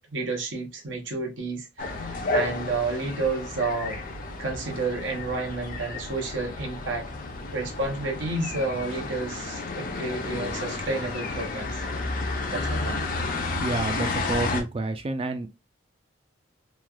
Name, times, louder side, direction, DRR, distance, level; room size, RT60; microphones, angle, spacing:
voice 1, 0.0-4.0 4.4-7.1 7.5-11.8 12.5-13.0, right 3 dB, 80° right, 0.8 m, -30 dB
sound 1, 1.8-14.6, left 3 dB, 45° left, 0.5 m, -32 dB
voice 2, 13.6-15.5, right 2 dB, 30° right, 0.3 m, -29 dB
3.1 x 2.3 x 2.2 m
head